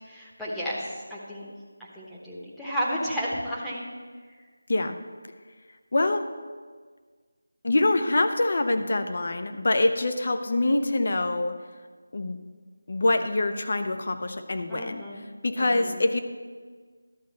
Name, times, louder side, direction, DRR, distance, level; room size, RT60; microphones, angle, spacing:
voice 1, 0.1-1.5 1.9-3.9 14.7-15.2 15.6-16.0, equal, ahead, -8 dB, 1.1 m, -32 dB
voice 2, 5.9-6.3 7.6-11.5 12.1-12.4 12.9-15.0 15.4-16.2, left 2 dB, 55° left, 8 dB, 0.8 m, -25 dB
12.0 x 4.1 x 7.9 m, 1.5 s
figure-of-eight pair, 170°, 0 cm